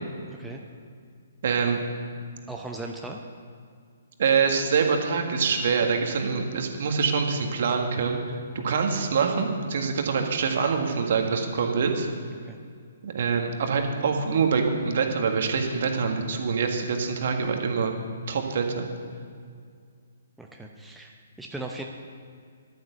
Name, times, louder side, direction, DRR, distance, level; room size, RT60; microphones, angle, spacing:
voice 1, 0.3-0.6 2.5-3.2 12.5-12.6 20.4-21.8, right 2 dB, 5° right, 0 dB, 0.9 m, -38 dB
voice 2, 1.4-1.8 4.2-12.1 13.0-17.9 18.3-18.9, right 5 dB, 50° right, 4 dB, 1.8 m, -25 dB
12.5 x 9.0 x 6.9 m, 2.2 s
figure-of-eight pair, 130°, 0 cm